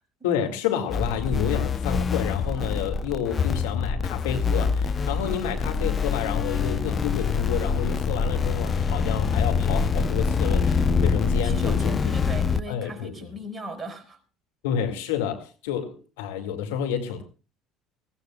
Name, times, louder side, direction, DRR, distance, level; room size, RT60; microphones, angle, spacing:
voice 1, 0.2-12.0 12.7-13.3 14.6-17.2, left 8 dB, 80° left, 2.3 m, -29 dB
sound 1, 0.9-12.6, left 5 dB, 35° left, 0.8 m, -25 dB
voice 2, 11.4-14.2, equal, 20° right, 5.2 m, -37 dB
21.0 x 17.5 x 2.4 m
hypercardioid pair, 65°, 0 cm